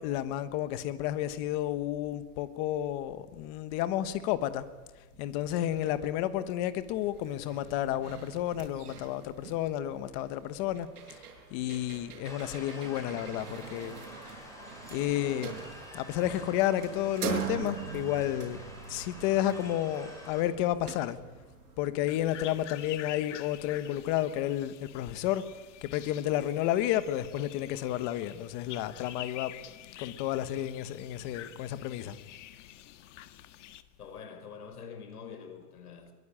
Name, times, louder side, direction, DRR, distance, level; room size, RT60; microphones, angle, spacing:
voice 1, 0.0-4.7 5.2-11.2 11.5-14.0 14.3-14.4 14.9-15.6 15.9-18.6 18.9-21.2 21.8-25.4 25.8-29.5 30.0-32.2, left 12 dB, 25° left, 1.2 m, -31 dB
sound 1, 4.7-4.8 5.1-23.0, right 7 dB, 85° right, 6.9 m, -43 dB
sound 2, 12.2-20.4, left 1 dB, 5° left, 5.0 m, -48 dB
sound 3, 22.1-33.8, left 13 dB, 50° left, 1.6 m, -47 dB
voice 2, 34.0-36.1, left 6 dB, 80° left, 6.1 m, -45 dB
23.5 x 22.5 x 8.9 m
supercardioid pair, 165°, 45 cm